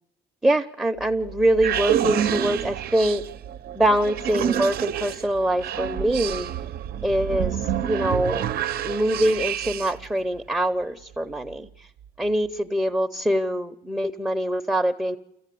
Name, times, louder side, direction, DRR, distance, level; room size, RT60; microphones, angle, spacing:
voice 1, 0.4-3.2 3.8-6.5 7.0-8.5 8.8-11.7 12.2-15.2, right 1 dB, 5° right, 5 dB, 0.7 m, -24 dB
sound 1, 1.0-10.1, right 10 dB, 65° right, 0.7 m, -28 dB
27.5 x 15.0 x 8.4 m, 0.89 s
cardioid pair, 110°, 17 cm